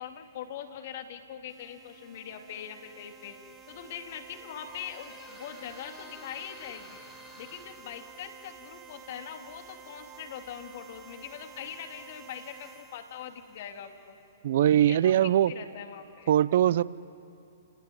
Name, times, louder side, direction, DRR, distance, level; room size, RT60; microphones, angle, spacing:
voice 1, 0.0-3.4 3.7-7.0 7.4-14.2 14.8-16.3, left 8 dB, 55° left, 5 dB, 2.7 m, -42 dB
sound 1, 1.5-14.2, right 6 dB, 25° right, 1.3 m, -52 dB
Squeak, 3.4-12.2, left 4 dB, 20° left, 3.9 m, -55 dB
voice 2, 14.4-15.5 16.3-16.8, right 11 dB, 60° right, 19 dB, 0.6 m, -21 dB
29.5 x 19.5 x 9.3 m, 2.6 s
hypercardioid pair, 125°, 0 cm